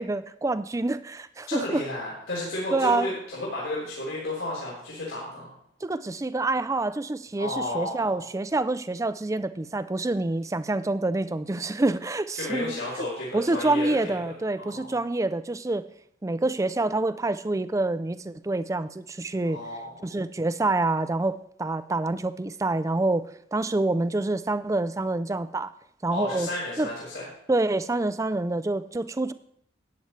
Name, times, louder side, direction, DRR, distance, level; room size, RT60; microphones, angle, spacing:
voice 1, 0.0-1.8 2.7-3.1 5.8-13.0 13.3-15.9 16.2-19.6 20.0-25.7 26.0-26.5 26.8-26.9 27.5-29.3, right 2 dB, 15° right, 14 dB, 0.3 m, -27 dB
voice 2, 1.5-5.5 7.4-8.2 12.4-14.3 14.6-15.0 19.4-19.9 26.1-27.3, left 2 dB, 85° left, -7 dB, 3.9 m, -32 dB
14.0 x 9.4 x 3.2 m, 0.67 s
head